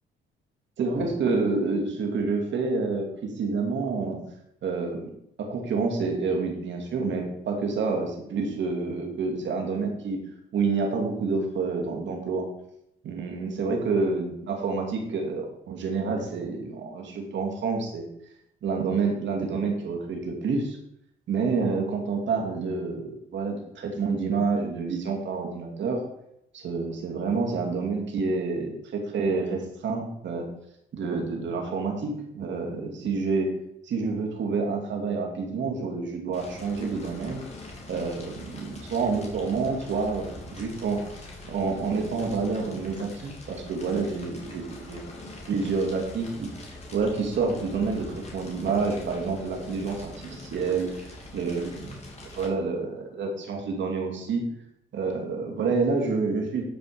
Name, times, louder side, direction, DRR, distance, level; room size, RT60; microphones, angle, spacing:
voice 1, 0.8-4.2 4.6-5.1 5.4-10.2 10.5-12.4 13.0-18.1 18.6-20.8 21.3-26.0 26.5-30.4 30.9-33.5 33.8-37.4 37.9-41.0 41.4-45.0 45.5-46.5 46.9-52.0 52.3-54.4 54.9-56.6, right 4 dB, 70° right, 2 dB, 2.7 m, -28 dB
Fire, 36.3-52.5, left 2 dB, 35° left, 3.3 m, -43 dB
12.5 x 5.2 x 5.1 m, 0.76 s
cardioid pair, 90°, 20 cm